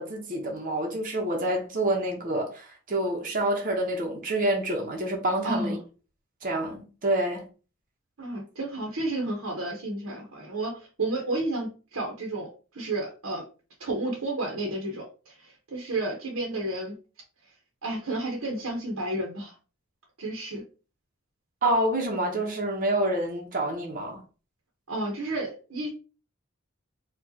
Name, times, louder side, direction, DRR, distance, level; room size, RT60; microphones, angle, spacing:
voice 1, 0.0-5.8 6.4-7.4 21.6-24.2, right 1 dB, 40° right, 0.9 m, -27 dB
voice 2, 5.4-5.8 8.2-13.4 13.8-16.9 17.8-19.5 20.2-20.6 24.9-25.9, right 2 dB, 70° right, 0.9 m, -31 dB
4.6 x 2.4 x 2.8 m
head